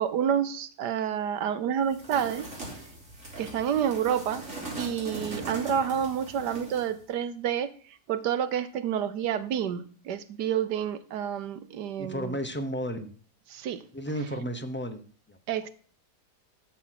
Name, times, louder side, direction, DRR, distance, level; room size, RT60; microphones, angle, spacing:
voice 1, 0.0-2.5 3.4-4.4 4.8-12.4 13.5-13.8 15.5-15.7, right 8 dB, 80° right, 13 dB, 1.4 m, -29 dB
sound 1, 1.9-6.9, right 2 dB, 50° right, 4.5 m, -40 dB
voice 2, 12.0-13.1 13.9-15.4, equal, 10° left, 6 dB, 0.6 m, -33 dB
11.5 x 6.3 x 5.8 m, 0.43 s
omnidirectional pair, 1.7 m